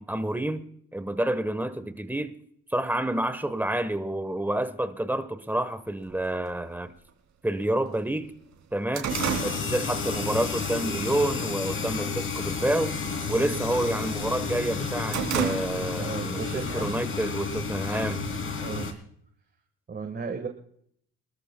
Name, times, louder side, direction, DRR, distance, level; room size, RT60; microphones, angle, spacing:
voice 1, 0.0-2.3 2.7-6.9 7.4-8.3 8.7-9.1 9.4-13.0 13.3-18.2, right 1 dB, 5° right, 1.0 m, -29 dB
sound 1, 6.1-6.2 7.1-7.2 7.6-7.7 8.1-10.5 10.9-11.2 11.6-12.1 12.4-12.7 13.0-14.2 14.6-16.1 16.5-16.6 17.5-18.4, right 8 dB, 65° right, 2.8 m, -32 dB
sound 2, 9.1-18.9, left 4 dB, 45° left, 2.6 m, -31 dB
voice 2, 16.0-17.0 18.6-19.0 19.9-20.5, right 5 dB, 35° right, 1.4 m, -35 dB
24.5 x 13.0 x 2.2 m
cardioid pair, 90°, 30 cm